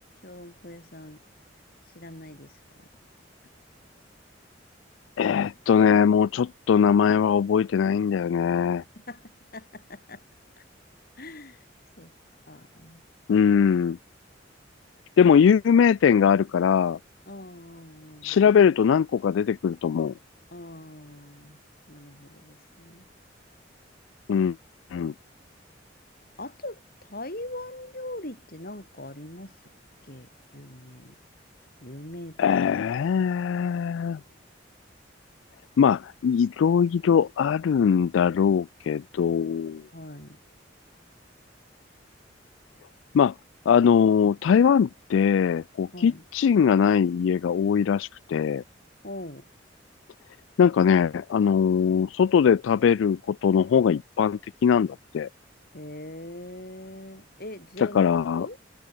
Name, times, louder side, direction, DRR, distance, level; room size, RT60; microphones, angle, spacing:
voice 1, 0.2-1.2 1.9-2.6 8.4-8.5 9.0-9.2 9.5-10.2 11.2-11.6 12.0-12.1 12.5-13.0 17.3-18.5 20.5-21.6 21.9-23.1 26.4-29.6 30.1-31.1 31.8-32.6 39.9-40.4 45.9-46.2 49.0-49.5 55.7-58.0 58.4-58.6, left 1 dB, 50° left, 7.2 m, -41 dB
voice 2, 5.2-8.8 13.3-14.0 15.2-17.0 18.2-20.1 24.3-24.6 24.9-25.1 32.4-34.2 35.8-39.8 43.1-43.3 43.7-48.6 50.6-55.3 57.9-58.5, left 7 dB, 90° left, 0.3 m, -21 dB
head